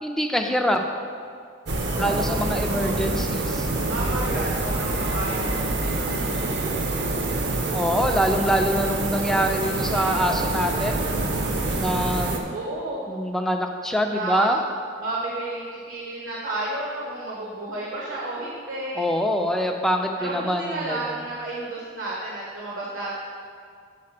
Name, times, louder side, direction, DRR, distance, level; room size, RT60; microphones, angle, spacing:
voice 1, 0.0-0.8 2.0-3.7 7.7-11.0 11.8-12.4 13.1-14.6 18.9-21.2, equal, ahead, 3 dB, 0.4 m, -24 dB
sound 1, 1.7-12.4, right 2 dB, 55° right, 0.7 m, -26 dB
voice 2, 1.9-3.0 3.9-6.5 12.5-13.0 14.1-14.6 15.0-19.0 20.2-23.2, right 2 dB, 80° right, -5 dB, 1.2 m, -32 dB
7.6 x 4.1 x 5.8 m, 2.2 s
head